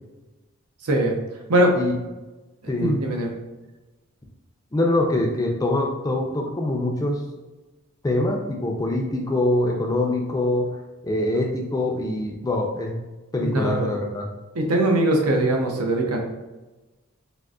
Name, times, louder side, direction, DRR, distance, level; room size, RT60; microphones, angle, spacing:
voice 1, 0.8-1.2 1.5-1.7 2.8-3.3 13.4-13.9 14.5-16.2, right 1 dB, 85° right, 2 dB, 0.6 m, -21 dB
voice 2, 2.7-3.0 4.7-7.2 8.0-10.7 11.0-13.0 13.3-14.3, left 1 dB, 15° left, 0 dB, 0.3 m, -24 dB
3.6 x 2.5 x 2.3 m, 1.1 s
head